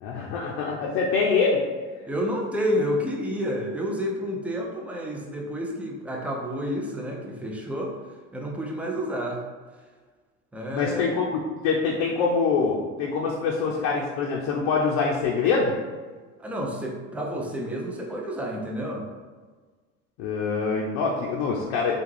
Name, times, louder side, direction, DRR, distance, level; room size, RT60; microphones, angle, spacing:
voice 1, 0.0-1.6 10.7-15.7 20.2-21.9, left 4 dB, 70° left, -3 dB, 0.6 m, -25 dB
voice 2, 2.1-8.0 8.3-9.4 10.5-11.2 16.4-19.1, equal, 5° right, -1 dB, 0.5 m, -30 dB
3.4 x 2.4 x 3.2 m, 1.4 s
supercardioid pair, 85°, 38 cm